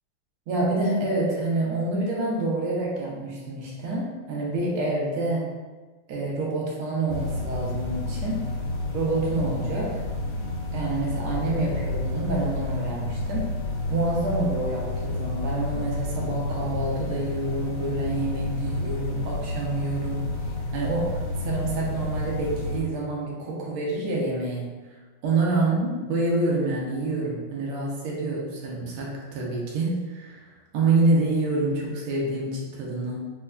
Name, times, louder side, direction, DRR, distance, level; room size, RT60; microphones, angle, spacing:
voice 1, 0.5-5.5 6.1-8.5 8.9-10.0 10.7-13.5 13.9-20.3 20.7-24.7 25.2-33.2, right 2 dB, 85° right, -4 dB, 1.6 m, -27 dB
sound 1, 7.1-22.8, left 2 dB, 65° left, 1.1 m, -30 dB
5.3 x 2.3 x 2.2 m, 1.3 s
omnidirectional pair, 2.4 m